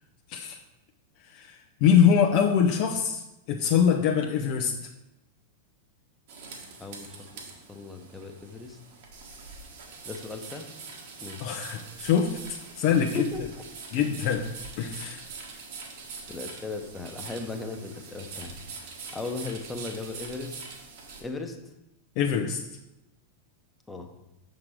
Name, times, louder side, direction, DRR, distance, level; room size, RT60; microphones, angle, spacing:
voice 1, 1.2-3.2 3.5-4.9 11.4-13.3 13.9-14.5 14.8-15.2 22.2-22.6, left 7 dB, 45° left, 2 dB, 0.7 m, -24 dB
sound 1, 6.3-21.2, right 4 dB, 50° right, 1.6 m, -43 dB
voice 2, 6.8-7.4 7.7-8.8 10.0-10.7 11.2-11.5 12.9-13.4 16.3-18.6 19.1-20.6 21.2-21.6 23.9-24.1, left 3 dB, 10° left, 4 dB, 1.1 m, -37 dB
7.2 x 6.3 x 4.8 m, 0.92 s
figure-of-eight pair, 90°, 0 cm